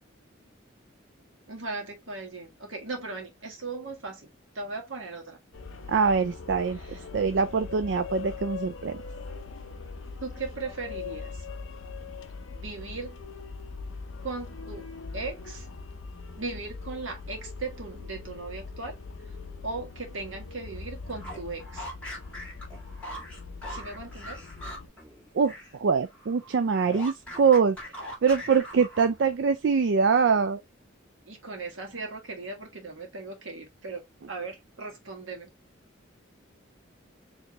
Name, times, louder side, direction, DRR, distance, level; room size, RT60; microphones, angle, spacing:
voice 1, 1.5-4.3 4.5-5.4 6.7-7.1 10.2-11.4 12.5-13.2 14.2-15.7 16.4-19.0 19.2-19.4 19.6-21.9 23.7-24.4 31.2-35.5, right 3 dB, 80° right, 1.6 m, -38 dB
sound 1, 5.5-24.9, left 4 dB, 80° left, 0.6 m, -41 dB
voice 2, 5.9-9.0 25.3-30.6, right 5 dB, 60° right, 0.4 m, -24 dB
sound 2, 21.0-25.8 26.0-29.3, equal, 5° left, 1.8 m, -42 dB
4.4 x 2.9 x 3.1 m
head